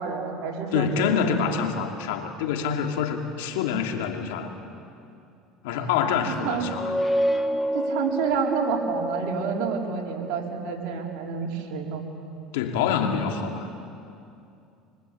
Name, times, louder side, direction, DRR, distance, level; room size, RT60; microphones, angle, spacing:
voice 1, 0.0-1.4 5.7-5.9 6.4-6.8 7.7-12.0, right 6 dB, 70° right, -1 dB, 4.4 m, -29 dB
voice 2, 0.7-4.5 5.6-6.9 12.5-13.7, left 7 dB, 85° left, 4 dB, 2.6 m, -26 dB
sound 1, 6.5-10.1, equal, 20° left, 1.8 m, -28 dB
25.5 x 24.0 x 8.6 m, 2.6 s
supercardioid pair, 100°, 0 cm